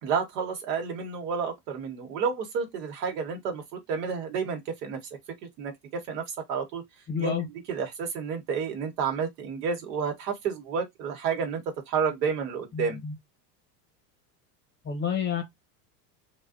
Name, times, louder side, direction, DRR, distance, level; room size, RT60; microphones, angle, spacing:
voice 1, 0.0-3.6 3.9-5.0 5.4-6.2 6.5-6.8 7.2-7.3 7.7-13.0, right 6 dB, 80° right, 1.0 m, -30 dB
voice 2, 7.1-7.5 12.7-13.1 14.8-15.4, left 7 dB, 25° left, 0.8 m, -29 dB
2.4 x 2.2 x 2.3 m
supercardioid pair, 105°, 48 cm